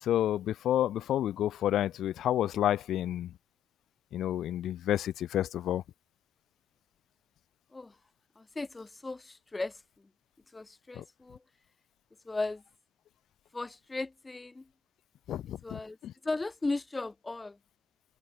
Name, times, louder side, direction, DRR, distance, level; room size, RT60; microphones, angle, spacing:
voice 1, 0.0-3.3 4.1-5.8 10.9-11.0 15.3-16.1, left 11 dB, 75° left, 1.5 m, -30 dB
voice 2, 8.4-10.1 10.5-11.4 12.3-12.6 13.5-14.7 15.6-16.0 16.2-17.6, left 3 dB, 20° left, 1.7 m, -36 dB
open air
cardioid pair, 90°, 0 cm